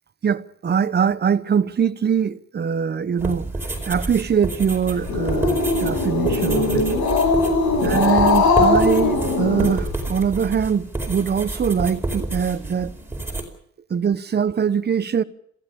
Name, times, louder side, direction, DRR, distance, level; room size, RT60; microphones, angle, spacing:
voice 1, 0.2-3.4 3.8-6.9 7.8-12.9 13.9-15.2, right 7 dB, 35° right, 1.0 m, -22 dB
sound 1, 3.2-13.4, right 2 dB, 5° right, 4.8 m, -29 dB
Growling, 4.9-10.2, left 3 dB, 70° left, 6.1 m, -20 dB
27.0 x 15.5 x 7.1 m
cardioid pair, 125°, 30 cm